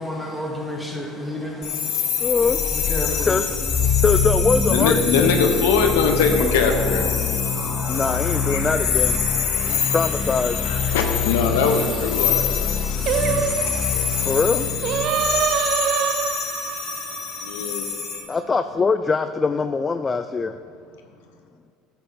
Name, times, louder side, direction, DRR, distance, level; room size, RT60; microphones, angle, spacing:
voice 1, 0.0-3.4 3.9-4.0, left 1 dB, ahead, -2 dB, 2.3 m, -31 dB
sound 1, 1.6-18.2, left 8 dB, 60° left, 2.2 m, -26 dB
sound 2, 2.1-15.4, left 5 dB, 40° left, 2.5 m, -26 dB
voice 2, 2.2-2.6 3.2-3.4 4.0-5.3 7.9-9.2 9.7-10.6 14.2-14.7 18.3-20.6, left 4 dB, 25° left, 10 dB, 0.3 m, -22 dB
voice 3, 4.7-8.6 9.4-9.9 10.6-12.7 13.3-13.4 17.4-17.9, left 5 dB, 85° left, 4 dB, 0.9 m, -23 dB
Singing, 13.1-18.4, right 9 dB, 55° right, 0.4 m, -26 dB
10.5 x 8.0 x 3.5 m, 2.4 s
supercardioid pair, 85°, 0 cm